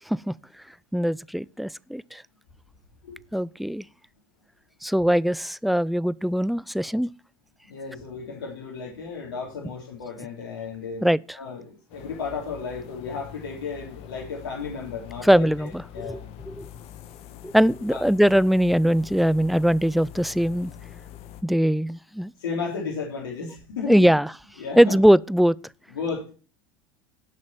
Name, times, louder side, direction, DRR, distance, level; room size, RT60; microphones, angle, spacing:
voice 1, 0.9-2.2 3.3-3.9 4.8-7.1 11.0-11.2 15.2-16.7 17.4-20.7 21.4-22.3 23.9-24.3 24.8-25.6, equal, ahead, 0.5 m, -21 dB
voice 2, 7.6-11.1 11.4-16.3 17.9-18.0 22.4-24.1 24.6-25.0 25.9-26.3, left 5 dB, 85° left, 3.5 m, -34 dB
sound 1, 11.9-21.4, left 10 dB, 55° left, 1.7 m, -44 dB
18.0 x 6.4 x 4.2 m
hypercardioid pair, 95°, 12 cm